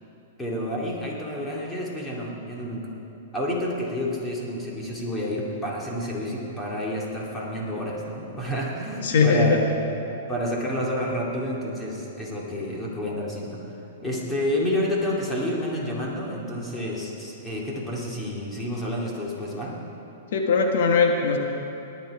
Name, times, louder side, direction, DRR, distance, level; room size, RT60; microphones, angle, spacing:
voice 1, 0.4-2.9 3.3-9.7 10.3-13.6 14.0-19.7, equal, 10° left, -4 dB, 2.5 m, -29 dB
voice 2, 9.0-9.6 20.3-21.4, left 5 dB, 70° left, 2 dB, 1.4 m, -20 dB
18.5 x 11.0 x 4.8 m, 2.9 s
hypercardioid pair, 150°, 0 cm